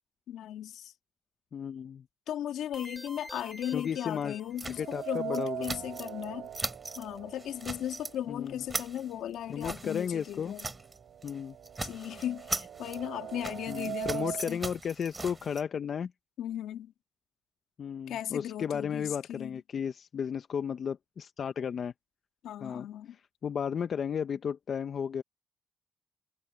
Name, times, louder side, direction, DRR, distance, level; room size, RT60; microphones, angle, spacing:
voice 1, 0.3-0.9 2.3-6.5 7.0-10.7 11.8-14.6 16.4-16.9 18.1-19.6 22.4-23.2, left 11 dB, 80° left, 2.0 m, -37 dB
voice 2, 1.5-2.0 3.7-4.4 4.8-5.8 8.3-8.6 9.5-10.5 11.2-11.6 13.7-16.1 17.8-21.9 22.6-22.9 23.4-25.2, left 7 dB, 50° left, 0.8 m, -34 dB
sound 1, 2.7-5.1, equal, ahead, 3.0 m, -48 dB
sound 2, 4.6-6.3 6.5-7.1 7.4-8.1 8.5-11.0 11.2-11.4 11.6-15.6, right 2 dB, 20° right, 4.9 m, -40 dB
sound 3, 4.8-8.8 9.2-9.3 10.2-10.3 10.7-14.5, right 11 dB, 65° right, 0.5 m, -41 dB
cardioid pair, 90°, 0 cm